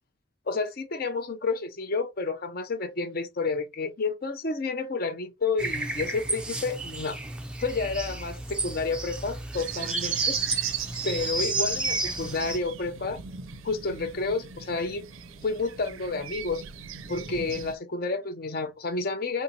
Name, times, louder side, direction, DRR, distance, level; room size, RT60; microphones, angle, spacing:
voice 1, 0.5-7.2 7.6-10.4 11.0-13.2 13.6-15.0 15.4-16.6 17.1-19.4, left 3 dB, 45° left, 0.6 m, -30 dB
sound 1, 5.6-12.6, right 1 dB, 5° right, 0.4 m, -32 dB
sound 2, 9.5-17.7, right 9 dB, 75° right, 0.4 m, -36 dB
3.6 x 2.7 x 2.7 m
head